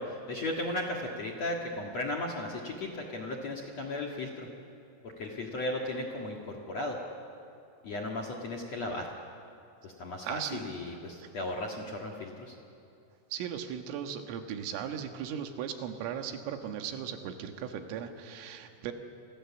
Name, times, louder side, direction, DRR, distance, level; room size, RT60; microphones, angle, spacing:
voice 1, 0.0-4.5 5.0-7.0 7.8-9.1 9.8-12.5, left 1 dB, 50° left, 2 dB, 2.1 m, -36 dB
voice 2, 10.2-10.6 11.2-11.4 13.3-18.9, right 8 dB, 85° right, 5 dB, 4.2 m, -37 dB
30.0 x 25.5 x 7.2 m, 2.6 s
omnidirectional pair, 5.7 m